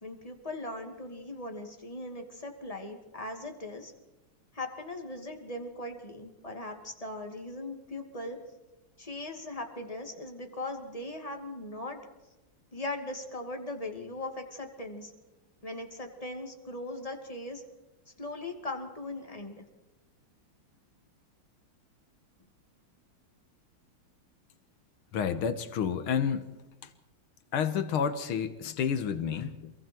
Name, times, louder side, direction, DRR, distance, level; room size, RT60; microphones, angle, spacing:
voice 1, 0.0-3.9 4.5-8.4 9.0-12.0 12.7-15.1 15.6-17.6 18.2-19.6, left 2 dB, 15° left, 2.5 m, -39 dB
voice 2, 25.1-26.5 27.5-29.7, left 7 dB, 85° left, 2.1 m, -30 dB
27.5 x 22.5 x 4.6 m
omnidirectional pair, 2.3 m